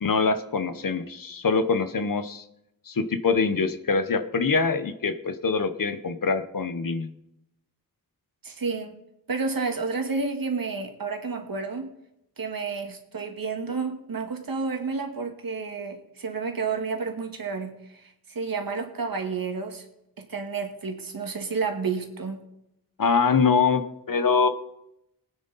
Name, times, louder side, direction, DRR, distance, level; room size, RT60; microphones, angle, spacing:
voice 1, 0.0-2.4 2.9-7.1 23.0-23.8 24.1-24.5, left 5 dB, 65° left, 10 dB, 1.1 m, -24 dB
voice 2, 8.4-9.0 9.3-11.9 12.4-19.8 20.2-22.4, right 4 dB, 70° right, 3 dB, 2.1 m, -30 dB
19.5 x 9.5 x 4.2 m, 0.82 s
wide cardioid pair, 70°, 36 cm